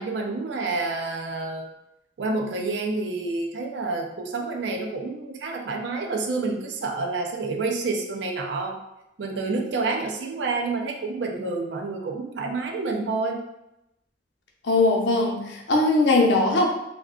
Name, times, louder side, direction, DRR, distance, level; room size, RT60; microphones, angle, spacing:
voice 1, 0.0-1.7 2.2-8.8 9.2-13.4, right 3 dB, 70° right, 1 dB, 0.4 m, -28 dB
voice 2, 14.6-16.7, left 2 dB, 70° left, -1 dB, 0.6 m, -20 dB
2.4 x 2.2 x 3.6 m, 0.88 s
head